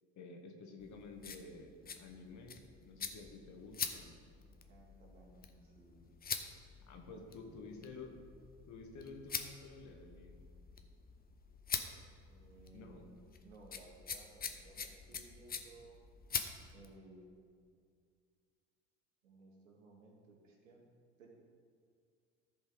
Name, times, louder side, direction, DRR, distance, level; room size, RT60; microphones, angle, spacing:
voice 1, 0.2-4.2 6.9-8.2 8.7-10.4 12.7-13.1, left 3 dB, 50° left, 3 dB, 1.8 m, -51 dB
sound 1, 0.8-17.0, left 6 dB, 25° left, 0.9 m, -45 dB
voice 2, 4.4-6.1 7.1-7.7 12.2-16.0 16.7-17.7 19.2-20.8 21.2-21.3, right 2 dB, 85° right, 0 dB, 2.1 m, -59 dB
14.0 x 5.2 x 4.9 m, 2.2 s
hypercardioid pair, 75°, 38 cm